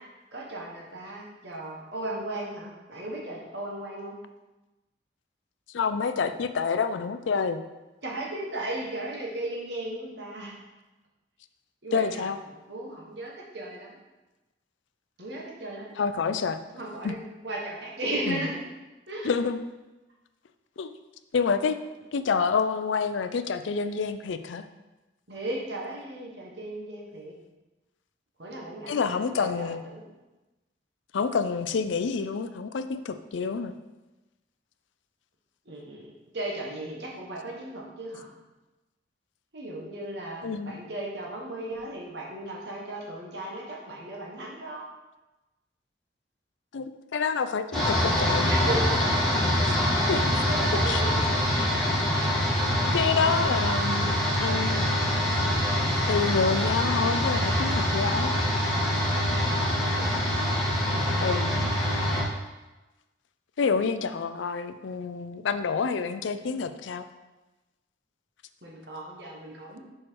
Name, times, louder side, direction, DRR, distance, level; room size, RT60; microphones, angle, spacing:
voice 1, 0.3-4.2 8.0-10.5 11.8-12.3 12.7-14.0 15.2-15.9 16.7-17.2 17.4-18.5 19.1-19.3 25.3-27.3 28.4-30.0 35.6-36.1 36.3-38.3 39.5-44.8 48.4-49.0 50.3-51.2 59.2-60.1 66.4-66.5 68.6-69.8, right 1 dB, 65° right, -2 dB, 1.4 m, -36 dB
voice 2, 5.7-7.6 11.9-12.4 16.0-16.6 17.0-17.1 18.3-18.4 19.2-19.6 20.8-20.9 21.3-21.8 22.1-24.6 28.9-29.8 31.1-33.7 40.4-40.8 46.7-48.5 49.7-49.8 50.1-50.4 50.9-51.0 52.9-54.9 56.1-58.3 61.2-61.6 63.6-67.0, left 5 dB, 80° left, 10 dB, 0.4 m, -28 dB
sound 1, 47.7-62.2, left 1 dB, ahead, 1.7 m, -25 dB
6.3 x 4.6 x 4.6 m, 1.1 s
head